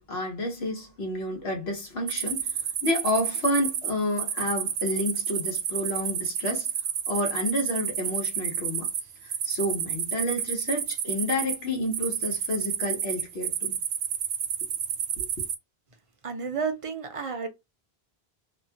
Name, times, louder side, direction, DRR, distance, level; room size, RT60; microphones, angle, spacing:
voice 1, 0.0-6.7 7.1-8.9 9.2-13.8 15.2-15.3, left 1 dB, 75° left, 1.3 m, -30 dB
sound 1, 2.1-15.6, right 8 dB, 90° right, 0.9 m, -30 dB
voice 2, 16.2-17.5, right 5 dB, 40° right, 0.6 m, -31 dB
2.8 x 2.3 x 2.7 m
omnidirectional pair, 1.1 m